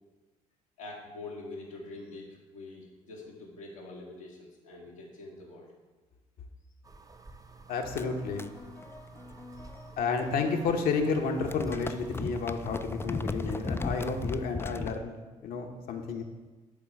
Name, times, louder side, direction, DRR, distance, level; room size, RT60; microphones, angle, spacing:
voice 1, 0.8-5.7 9.1-9.9, left 2 dB, 85° left, -4 dB, 1.1 m, -45 dB
sound 1, 6.8-14.4, right 4 dB, 20° right, 0.7 m, -50 dB
voice 2, 7.7-8.5 10.0-16.2, left 4 dB, 60° left, 4 dB, 0.9 m, -31 dB
sound 2, 7.9-10.6 10.9-15.0, left 3 dB, 15° left, 0.4 m, -38 dB
9.6 x 3.8 x 4.3 m, 1.2 s
figure-of-eight pair, 40°, 17 cm